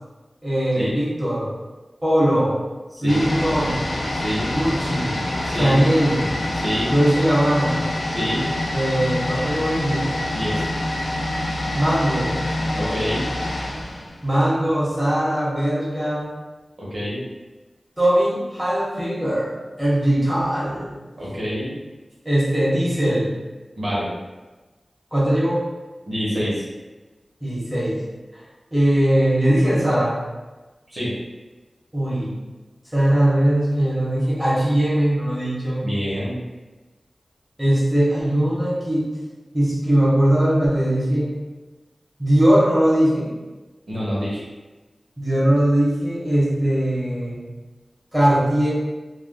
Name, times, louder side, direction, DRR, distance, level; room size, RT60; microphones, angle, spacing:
voice 1, 0.4-1.5 2.0-2.5 3.0-3.8 4.5-5.1 5.5-6.3 6.9-7.9 8.7-10.2 11.7-12.3 14.2-16.2 18.0-21.0 22.2-23.4 25.1-25.6 27.4-28.0 28.3-28.4 28.7-30.1 31.9-32.4 32.9-35.9 37.6-39.1 39.5-41.3 42.2-43.3 45.2-47.4 48.1-48.7, right 1 dB, 15° right, -8 dB, 1.2 m, -20 dB
sound 1, 3.1-14.8 15.1-15.2, left 1 dB, 85° left, 0.4 m, -26 dB
voice 2, 4.1-4.5 5.4-5.8 6.5-6.9 8.1-8.5 10.3-10.7 12.7-13.3 16.8-17.2 21.2-21.7 23.8-24.1 26.1-26.6 30.9-31.1 35.8-36.4 43.9-44.4, equal, 70° right, -8 dB, 1.0 m, -26 dB
3.3 x 2.4 x 2.2 m, 1.2 s
wide cardioid pair, 55°, 0 cm